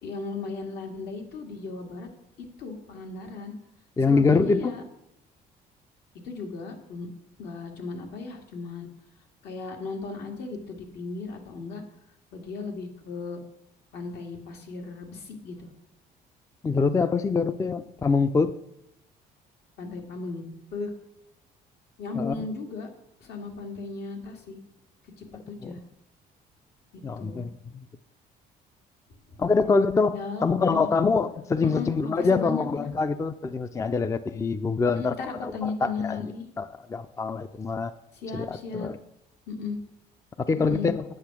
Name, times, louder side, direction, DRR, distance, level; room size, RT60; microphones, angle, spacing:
voice 1, 0.0-2.1 2.6-3.5 4.0-4.8 6.2-7.1 7.4-8.9 9.4-11.8 12.3-13.4 13.9-15.7 19.8-20.5 20.7-20.9 22.0-22.9 23.2-24.6 25.2-25.8 26.9-27.5 30.1-30.9 31.6-32.9 34.9-36.4 38.1-38.9 39.5-39.8 40.6-40.9, left 4 dB, 75° left, 2 dB, 2.1 m, -36 dB
voice 2, 4.0-4.7 16.6-18.5 22.2-22.3 25.6-25.7 27.0-27.8 29.4-36.3 36.6-37.9 38.3-39.0 40.5-41.0, left 4 dB, 20° left, 12 dB, 0.4 m, -25 dB
8.7 x 7.9 x 6.0 m, 0.82 s
cardioid pair, 110°, 17 cm